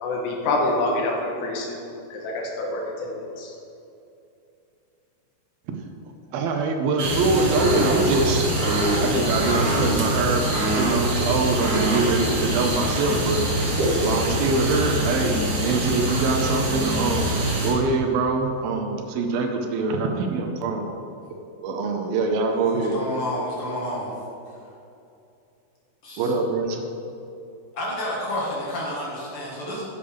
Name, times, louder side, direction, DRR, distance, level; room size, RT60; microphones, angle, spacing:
voice 1, 0.0-3.5, left 2 dB, 90° left, -1 dB, 3.1 m, -27 dB
voice 2, 6.3-8.5 9.0-13.5 14.0-17.3 17.6-20.9 21.6-23.0 26.2-26.8, right 3 dB, 75° right, 4 dB, 2.3 m, -24 dB
sound 1, 7.0-17.7, right 1 dB, 50° right, 2.0 m, -24 dB
voice 3, 22.5-24.1 26.0-26.3 27.7-29.8, left 1 dB, 50° left, -5 dB, 1.7 m, -30 dB
10.5 x 8.4 x 3.4 m, 2.7 s
omnidirectional pair, 4.8 m